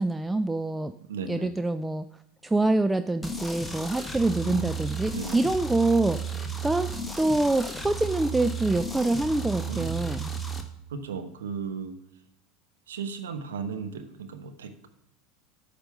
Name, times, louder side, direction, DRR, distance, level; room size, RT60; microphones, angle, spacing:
voice 1, 0.0-0.9 1.3-2.1 2.4-6.2 6.6-6.9 7.2-10.3, right 2 dB, 10° right, 11 dB, 0.3 m, -25 dB
voice 2, 1.1-1.5 4.4-4.7 5.1-5.4 9.6-10.2 10.9-11.9 12.9-14.9, right 6 dB, 75° right, 8 dB, 0.9 m, -35 dB
sound 1, 3.2-10.6, right 4 dB, 5° left, 1.2 m, -34 dB
8.8 x 5.2 x 6.5 m, 0.81 s
hypercardioid pair, 80°, 0 cm